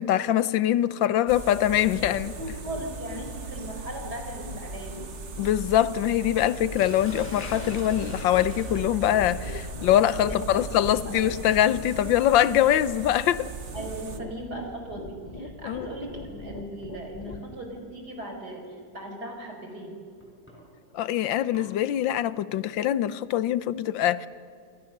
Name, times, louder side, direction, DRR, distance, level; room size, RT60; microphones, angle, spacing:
voice 1, 0.0-2.4 5.4-13.5 15.6-15.9 20.9-24.3, left 11 dB, 90° left, 1.5 m, -23 dB
sound 1, 1.3-14.2, right 4 dB, 40° right, 1.6 m, -39 dB
sound 2, 1.7-17.6, left 2 dB, 30° left, 1.2 m, -42 dB
voice 2, 2.3-5.0 10.2-10.4 10.7-11.1 13.7-20.0, right 1 dB, 60° right, 5.3 m, -38 dB
Sink (filling or washing), 6.8-16.7 17.8-18.1 18.6-18.7 20.2-21.7, equal, 5° left, 6.5 m, -48 dB
28.5 x 23.5 x 6.6 m
omnidirectional pair, 2.0 m